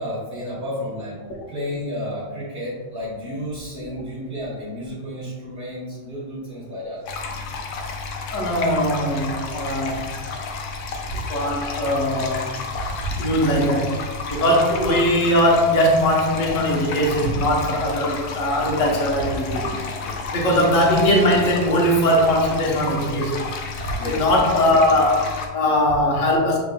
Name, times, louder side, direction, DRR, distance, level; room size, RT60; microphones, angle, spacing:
voice 1, 0.0-7.0 18.9-19.0 24.0-24.3, equal, 40° right, -7 dB, 1.3 m, -32 dB
sound 1, 7.1-25.5, left 4 dB, 80° left, 1.1 m, -31 dB
voice 2, 8.3-10.0 11.1-12.5 13.2-13.9 14.3-19.7 20.3-23.4 23.9-26.6, equal, 60° left, -2 dB, 1.3 m, -20 dB
6.6 x 3.4 x 2.2 m, 1.4 s
omnidirectional pair, 1.6 m